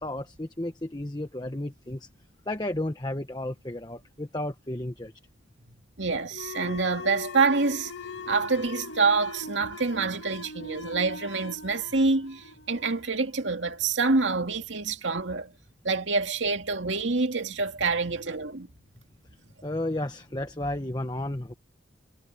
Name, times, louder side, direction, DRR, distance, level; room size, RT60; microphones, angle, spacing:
voice 1, 0.0-2.1 2.5-5.1 19.6-21.5, left 1 dB, 20° left, 1.2 m, -33 dB
voice 2, 6.0-7.9 8.3-15.5 15.8-18.7, right 4 dB, 75° right, 2.3 m, -26 dB
sound 1, 6.3-13.5, left 3 dB, 70° left, 2.5 m, -41 dB
head